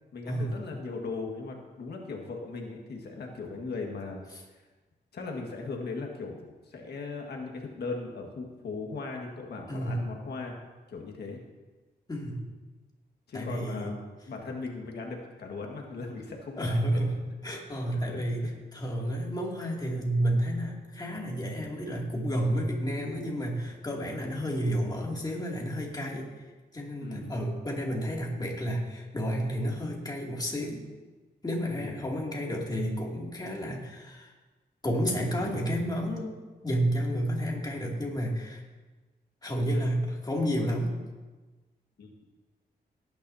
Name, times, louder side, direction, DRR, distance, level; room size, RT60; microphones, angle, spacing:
voice 1, 0.1-4.2 4.5-4.6 5.1-10.6 10.9-11.4 13.3-17.0 17.9-18.2 27.0-27.3 31.8-32.0 42.0-42.1, left 3 dB, 75° left, 1 dB, 1.7 m, -38 dB
voice 2, 9.7-10.0 12.1-12.5 13.3-13.9 16.6-17.2 17.4-26.3 26.7-30.8 31.4-34.3 34.8-36.3 36.6-38.6 39.4-41.0, equal, 25° left, -2 dB, 2.6 m, -31 dB
18.0 x 10.0 x 2.8 m, 1.2 s
cardioid pair, 100°, 17 cm